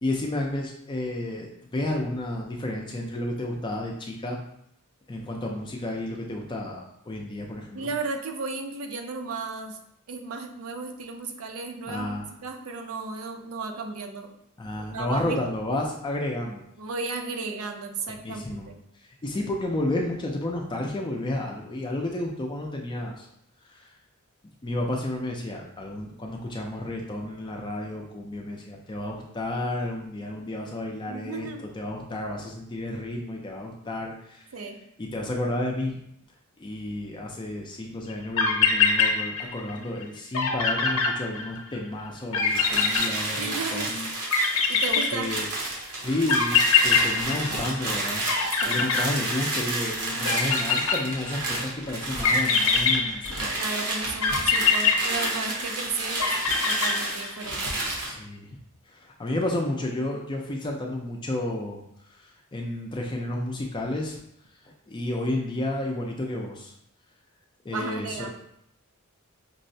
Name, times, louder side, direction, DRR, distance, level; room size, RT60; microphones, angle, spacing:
voice 1, 0.0-4.4 5.1-7.9 11.9-12.3 14.6-16.6 18.1-18.7 19.2-23.3 23.6-23.9 24.6-34.5 35.0-36.0 36.6-44.1 45.1-45.5 46.0-48.3 48.7-53.5 58.0-58.6 58.9-61.8 62.1-64.2 64.6-66.7 67.6-68.3, left 1 dB, 20° left, 0 dB, 0.4 m, -31 dB
voice 2, 7.7-9.8 10.1-12.1 12.4-14.3 14.9-15.4 16.8-18.8 31.1-31.6 34.5-34.8 43.4-43.9 44.7-45.3 48.6-48.8 53.5-56.3 56.7-57.8 67.7-68.3, right 4 dB, 65° right, 5 dB, 0.5 m, -34 dB
sound 1, 38.1-38.2 38.4-39.7 40.0-40.1 40.3-41.8 42.3-43.7 44.3-45.6 46.3-48.0 48.3-49.7 50.2-51.5 52.2-53.7 54.2-55.7 56.2-57.4, left 6 dB, 65° left, 0.6 m, -23 dB
sound 2, 42.4-58.2, right 2 dB, 85° right, 0.9 m, -31 dB
5.3 x 2.1 x 2.6 m, 0.74 s
head